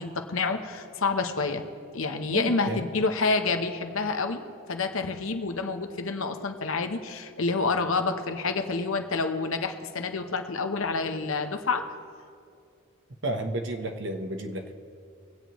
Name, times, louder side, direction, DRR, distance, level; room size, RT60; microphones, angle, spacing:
voice 1, 0.0-1.6 1.9-4.4 4.7-11.8, left 4 dB, 70° left, 6 dB, 0.9 m, -28 dB
voice 2, 2.3-2.9 13.2-14.7, right 1 dB, 55° right, 4 dB, 1.0 m, -32 dB
23.5 x 8.6 x 3.1 m, 2.4 s
head